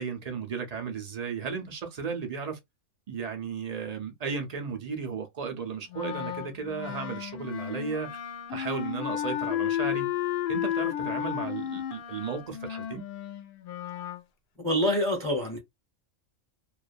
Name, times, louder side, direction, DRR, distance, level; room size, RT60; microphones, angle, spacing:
voice 1, 0.0-2.6 3.1-8.1 8.5-10.1 10.5-13.0, right 5 dB, 55° right, 0.4 m, -34 dB
Wind instrument woodwind instrument, 5.9-14.2, left 11 dB, 65° left, 0.5 m, -33 dB
voice 2, 14.6-15.6, equal, 5° left, 0.7 m, -26 dB
2.4 x 2.2 x 2.4 m
omnidirectional pair, 1.4 m